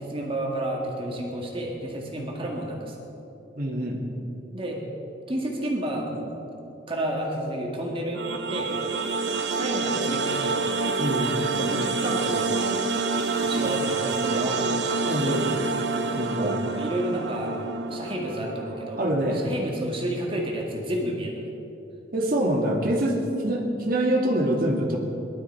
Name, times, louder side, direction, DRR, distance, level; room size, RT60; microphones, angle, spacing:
voice 1, 0.0-3.0 4.5-4.8 5.3-6.3 6.6-8.2 8.5-8.7 9.5-10.7 11.5-12.7 13.4-14.6 16.0-16.3 16.7-19.0 19.3-21.5, right 1 dB, 30° right, -1 dB, 2.0 m, -31 dB
voice 2, 3.6-4.0 11.0-11.4 15.0-15.5 16.1-16.6 19.0-19.5 22.1-23.2 23.4-25.0, right 1 dB, 55° right, -1 dB, 2.3 m, -25 dB
sound 1, 8.1-19.2, right 4 dB, 70° right, 1.0 m, -27 dB
19.5 x 12.5 x 4.5 m, 2.9 s
head